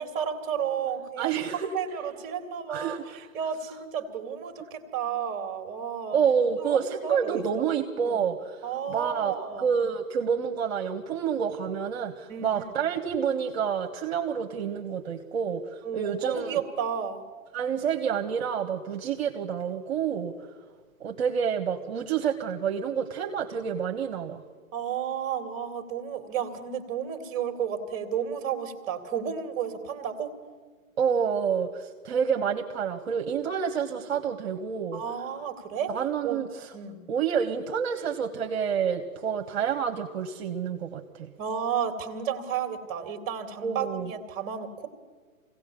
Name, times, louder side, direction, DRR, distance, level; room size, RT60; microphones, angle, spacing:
voice 1, 0.0-1.4 1.7-6.2 6.6-7.7 8.0-8.2 8.6-9.7 12.3-12.6 15.8-17.2 24.7-30.3 34.9-35.9 36.2-36.4 36.7-37.0 41.4-44.9, right 8 dB, 30° right, 7 dB, 2.2 m, -32 dB
voice 2, 1.2-1.7 2.7-3.3 6.1-16.6 17.5-20.3 21.0-24.4 31.0-35.0 35.9-36.7 37.1-41.3 43.6-44.1, right 7 dB, 45° right, 6 dB, 1.5 m, -28 dB
25.0 x 17.0 x 6.9 m, 1.5 s
hypercardioid pair, 140°, 43 cm